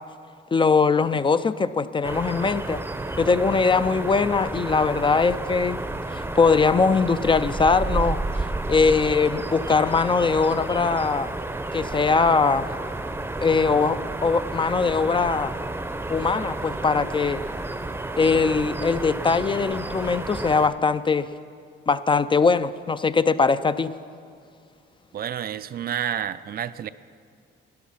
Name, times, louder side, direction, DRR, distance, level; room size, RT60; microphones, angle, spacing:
voice 1, 0.5-2.8 3.2-8.2 8.7-11.3 11.7-12.7 13.4-15.5 16.1-17.4 18.2-21.3 21.9-23.9, left 4 dB, 25° left, 13 dB, 0.4 m, -21 dB
sound 1, 2.0-20.7, right 2 dB, 10° right, 0.6 m, -31 dB
voice 2, 25.1-26.9, right 9 dB, 50° right, 14 dB, 0.4 m, -29 dB
13.5 x 10.0 x 5.7 m, 2.2 s
cardioid pair, 90°, 20 cm